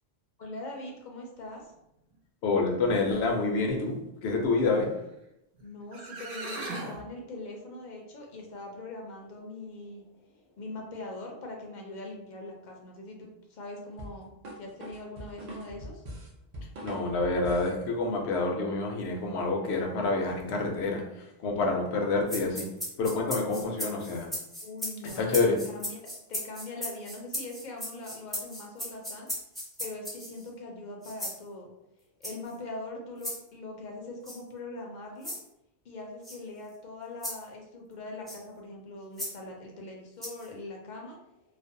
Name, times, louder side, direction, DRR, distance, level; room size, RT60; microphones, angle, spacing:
voice 1, 0.4-1.7 5.6-10.1 10.6-16.0 24.6-29.3 29.8-31.7 32.2-35.3 35.8-41.2, left 2 dB, 55° left, 0 dB, 0.5 m, -42 dB
voice 2, 2.4-4.0 4.2-4.9 16.8-21.0 21.4-22.7 23.0-24.3 25.2-25.6, left 3 dB, 80° left, 1 dB, 0.8 m, -27 dB
sound 1, 5.6-5.7 5.9-7.0, right 2 dB, 80° right, 0.9 m, -37 dB
sound 2, 14.0-17.8, equal, 50° right, 0.5 m, -42 dB
sound 3, 22.3-30.5 31.0-31.4 32.2-32.5 33.2-33.4 34.2-34.4 35.2-35.4 36.2-36.4 37.2-37.4 38.3-38.4 39.2-39.3 40.2-40.5, equal, ahead, 0.4 m, -37 dB
2.5 x 2.0 x 2.6 m, 0.84 s
omnidirectional pair, 1.1 m